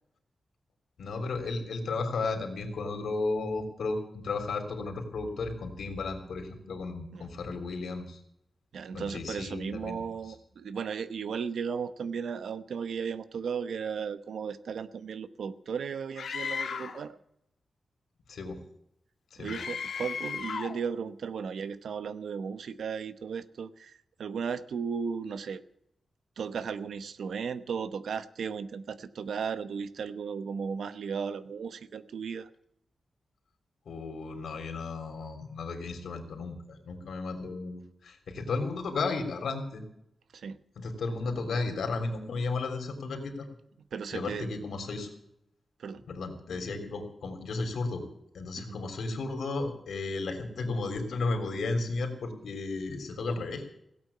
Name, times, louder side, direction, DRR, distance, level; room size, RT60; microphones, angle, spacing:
voice 1, 1.0-8.2 8.9-10.0 18.3-18.6 19.3-19.5 33.8-39.8 40.7-43.3 44.1-45.1 46.1-48.1 48.3-53.7, left 3 dB, 85° left, 5 dB, 3.4 m, -34 dB
voice 2, 8.7-17.2 19.4-25.6 26.4-32.5 40.3-40.6 43.8-44.5 45.8-46.0 48.6-48.8, right 6 dB, 85° right, 13 dB, 1.0 m, -35 dB
Screaming, 16.2-17.0 19.5-20.8, left 6 dB, 70° left, 1.4 m, -35 dB
17.0 x 8.7 x 8.4 m, 0.77 s
wide cardioid pair, 180°, 0 cm